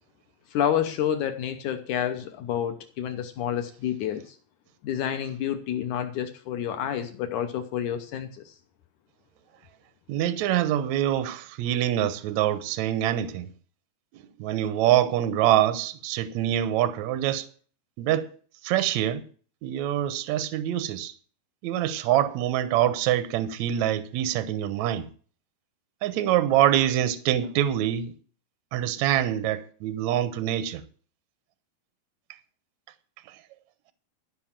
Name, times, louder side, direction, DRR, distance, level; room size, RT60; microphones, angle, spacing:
voice 1, 0.5-4.4 4.8-8.5, left 9 dB, 75° left, 1.8 m, -29 dB
voice 2, 10.1-13.5 14.1-17.5 18.0-18.3 18.6-19.3 19.6-21.1 21.6-25.1 26.0-28.1 28.7-30.8 33.3-33.4, right 12 dB, 80° right, 1.6 m, -25 dB
13.0 x 6.1 x 7.4 m
omnidirectional pair, 4.6 m